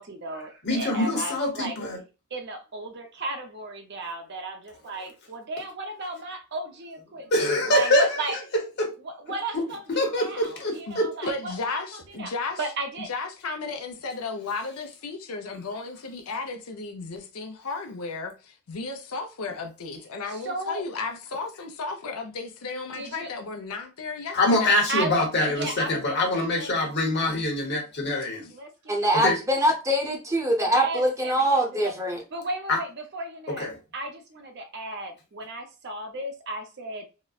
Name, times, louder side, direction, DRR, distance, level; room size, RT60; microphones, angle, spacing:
voice 1, 0.0-1.8 2.3-8.4 9.0-11.8 12.2-12.3 12.6-13.1 20.3-20.8 22.9-23.3 24.9-26.7 28.5-29.3 30.6-31.9 32.3-33.7 33.9-37.0, right 2 dB, 50° right, 0.6 m, -35 dB
voice 2, 0.6-2.0 7.3-8.1 8.8-8.9 9.5-9.6 9.9-11.1 24.3-28.5 29.1-29.4 32.7-32.8 33.5-33.8, left 1 dB, 50° left, 0.9 m, -24 dB
voice 3, 11.3-12.6 13.0-24.9, left 3 dB, 75° left, 0.6 m, -34 dB
voice 4, 28.9-32.2, right 1 dB, 15° right, 0.7 m, -23 dB
3.9 x 2.1 x 2.3 m
head